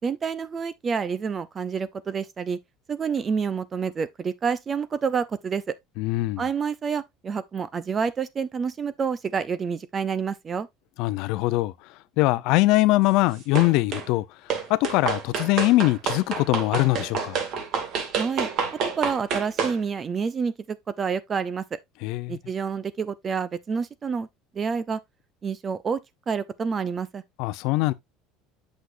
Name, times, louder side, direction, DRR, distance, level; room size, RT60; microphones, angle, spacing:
voice 1, 0.0-2.6 2.9-5.7 6.4-10.7 18.1-21.8 22.3-24.3 24.5-25.0 25.4-26.0 26.3-27.2, right 6 dB, 25° right, 0.6 m, -28 dB
voice 2, 6.0-6.4 11.0-11.7 12.2-14.2 14.7-17.4 22.0-22.4 27.4-27.9, left 19 dB, 60° left, 0.6 m, -22 dB
sound 1, 13.5-14.1 14.5-19.8, right 6 dB, 50° right, 2.1 m, -28 dB
8.2 x 6.4 x 2.6 m
cardioid pair, 150°, 0 cm